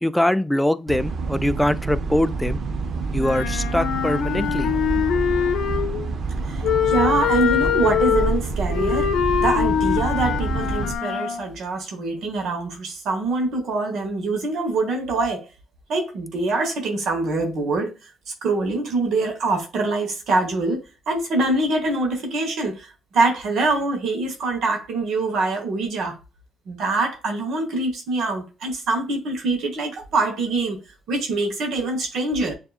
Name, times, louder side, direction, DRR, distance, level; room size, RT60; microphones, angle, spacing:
voice 1, 0.0-2.6 3.1-4.7 5.6-5.7, left 1 dB, 5° left, 0.3 m, -22 dB
sound 1, 0.9-10.9, right 4 dB, 55° right, 0.6 m, -27 dB
Wind instrument woodwind instrument, 3.2-6.1 6.6-11.5, left 9 dB, 85° left, 0.6 m, -23 dB
voice 2, 6.5-9.1 9.4-15.5 15.9-18.1 18.4-26.2 26.7-30.8 31.1-32.5, right 3 dB, 70° right, 1.1 m, -24 dB
6.7 x 2.8 x 2.3 m
cardioid pair, 90°, 0 cm